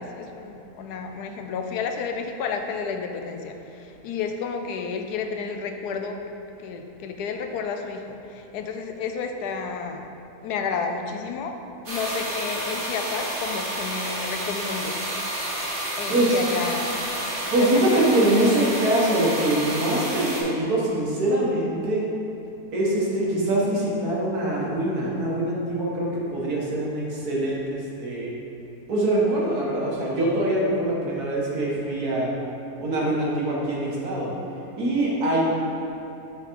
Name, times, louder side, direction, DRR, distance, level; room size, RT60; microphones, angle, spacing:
voice 1, 0.0-6.2 6.6-10.1 10.4-11.6 11.9-15.0 15.9-17.1 17.6-18.1, left 5 dB, 80° left, 5 dB, 1.1 m, -31 dB
sound 1, 11.9-20.4, right 1 dB, 50° right, 1.5 m, -30 dB
voice 2, 17.5-22.1 22.7-28.3 28.9-32.3 32.8-34.3 34.8-35.4, right 1 dB, 70° right, -5 dB, 1.8 m, -23 dB
7.2 x 3.9 x 4.5 m, 3.0 s
omnidirectional pair, 1.7 m